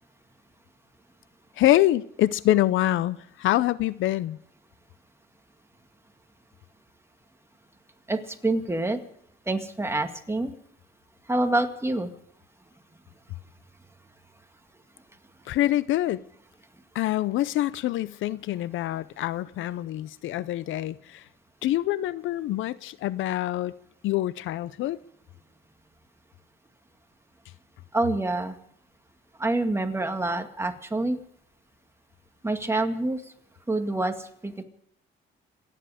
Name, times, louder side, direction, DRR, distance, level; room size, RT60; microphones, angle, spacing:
voice 1, 1.6-4.4 15.5-16.2 16.9-21.2 21.6-23.7 24.0-25.0, left 14 dB, 80° left, 0.6 m, -25 dB
voice 2, 8.1-9.0 9.5-10.5 11.3-12.1 27.9-28.6 29.4-31.2 32.4-33.2 33.7-34.6, right 2 dB, 15° right, 2.0 m, -26 dB
27.0 x 10.0 x 5.0 m
cardioid pair, 90°, 20 cm